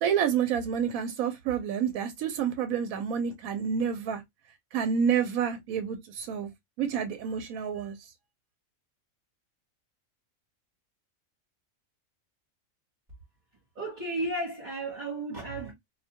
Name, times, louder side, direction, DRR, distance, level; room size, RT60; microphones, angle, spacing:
voice 1, 0.0-4.2 4.7-6.5 6.8-7.9, right 7 dB, 80° right, 1.0 m, -29 dB
voice 2, 13.7-15.7, right 2 dB, 35° right, 1.1 m, -33 dB
2.5 x 2.1 x 2.7 m
omnidirectional pair, 1.5 m